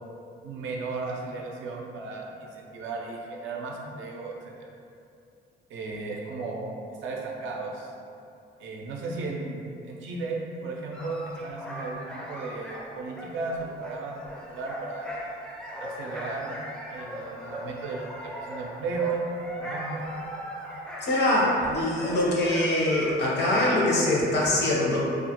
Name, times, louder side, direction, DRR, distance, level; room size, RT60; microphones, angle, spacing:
voice 1, 0.4-4.7 5.7-6.8 7.0-7.9 8.6-14.2 14.5-15.1 15.8-16.6 16.9-20.0, right 3 dB, 80° right, -1 dB, 0.4 m, -35 dB
sound 1, 10.9-23.1, equal, 5° left, 0.4 m, -39 dB
voice 2, 21.0-25.0, left 1 dB, 60° left, -4 dB, 0.7 m, -23 dB
2.3 x 2.1 x 2.8 m, 2.5 s
cardioid pair, 90°, 20 cm